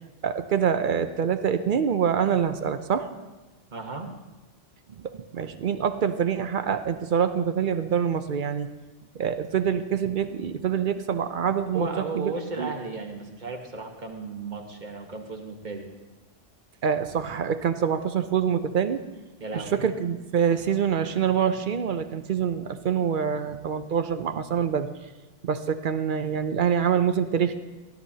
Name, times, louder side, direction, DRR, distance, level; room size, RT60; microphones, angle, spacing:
voice 1, 0.2-3.1 5.3-8.7 9.1-11.9 12.2-12.3 12.6-12.7 16.8-19.0 19.5-24.9 25.4-27.5, right 7 dB, 55° right, 9 dB, 0.6 m, -25 dB
voice 2, 3.7-4.1 11.7-15.9 19.4-19.9, right 4 dB, 40° right, 2 dB, 1.3 m, -35 dB
16.5 x 11.5 x 2.8 m, 1.1 s
omnidirectional pair, 1.3 m